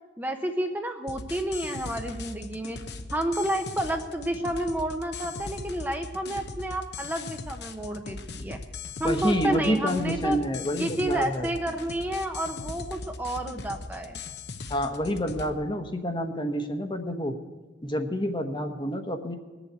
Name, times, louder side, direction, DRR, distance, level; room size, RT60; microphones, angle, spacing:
voice 1, 0.2-2.8 3.1-8.6 9.0-10.4 10.8-14.2, right 1 dB, 10° right, 4 dB, 0.8 m, -30 dB
sound 1, 1.1-15.5, left 3 dB, 65° left, 0.9 m, -40 dB
voice 2, 9.0-11.5 14.7-17.4 17.8-19.4, equal, 25° left, 6 dB, 1.1 m, -28 dB
19.5 x 7.2 x 8.2 m, 1.2 s
head